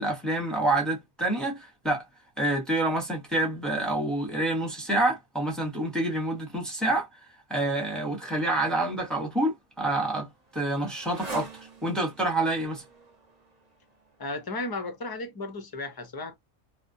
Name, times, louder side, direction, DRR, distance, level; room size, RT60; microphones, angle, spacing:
voice 1, 0.0-2.0 2.4-7.1 7.5-10.3 10.5-12.8, right 2 dB, ahead, 0.8 m, -27 dB
Motorcycle, 9.5-14.6, right 4 dB, 40° right, 0.8 m, -46 dB
voice 2, 14.2-16.4, left 2 dB, 30° left, 0.4 m, -34 dB
2.5 x 2.1 x 2.6 m
omnidirectional pair, 1.2 m